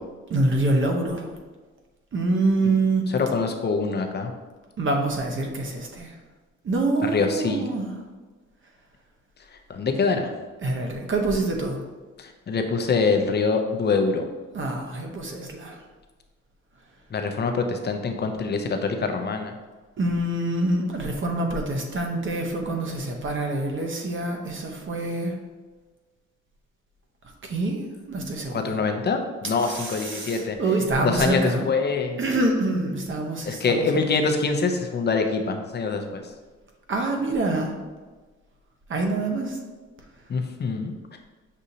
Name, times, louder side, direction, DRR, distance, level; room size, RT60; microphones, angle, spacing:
voice 1, 0.3-1.3 2.1-3.0 4.8-6.1 6.6-7.9 10.6-11.8 14.5-15.8 20.0-25.3 27.4-28.8 29.6-31.7 32.2-34.0 36.9-37.8 38.9-39.6, right 2 dB, 40° right, 2 dB, 0.8 m, -26 dB
voice 2, 3.1-4.3 7.0-7.6 9.7-10.3 12.2-14.2 17.1-19.5 28.5-30.6 31.0-32.2 33.4-36.2 40.3-40.9, left 4 dB, 35° left, 5 dB, 0.6 m, -24 dB
6.2 x 2.7 x 2.7 m, 1.3 s
cardioid pair, 90°, 30 cm